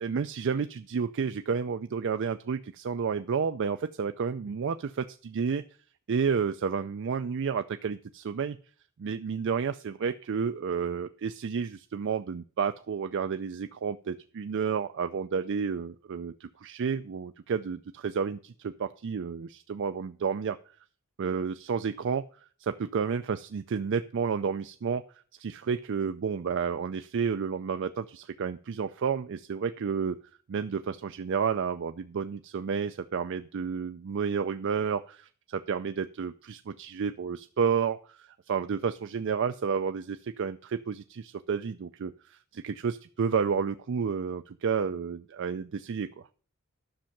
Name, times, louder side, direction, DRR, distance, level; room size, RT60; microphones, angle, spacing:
voice 1, 0.0-5.6 6.1-8.6 9.0-20.6 21.2-22.2 22.6-25.0 25.4-30.2 30.5-38.0 38.5-46.1, right 6 dB, 60° right, 10 dB, 0.4 m, -31 dB
10.5 x 6.4 x 5.8 m, 0.43 s
head